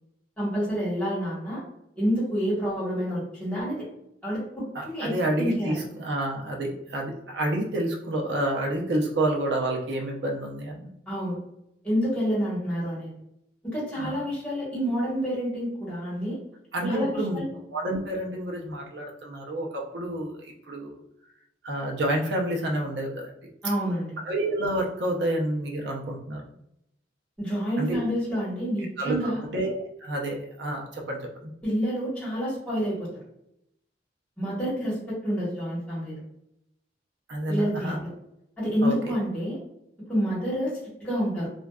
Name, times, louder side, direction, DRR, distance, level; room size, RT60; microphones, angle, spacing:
voice 1, 0.4-1.6 2.0-3.8 4.2-5.8 11.1-11.4 11.8-13.1 13.6-16.4 16.8-17.5 23.6-24.2 27.4-29.5 31.6-33.1 34.4-36.2 37.5-38.1 38.6-39.6 40.1-41.5, equal, 10° left, -8 dB, 1.1 m, -28 dB
voice 2, 4.7-10.9 14.0-14.2 16.7-17.4 17.7-21.0 21.6-23.3 24.2-26.4 27.8-28.0 29.0-31.5 37.3-38.0 38.8-39.0, right 1 dB, 65° right, 0 dB, 0.5 m, -29 dB
2.5 x 2.2 x 2.2 m, 0.80 s
head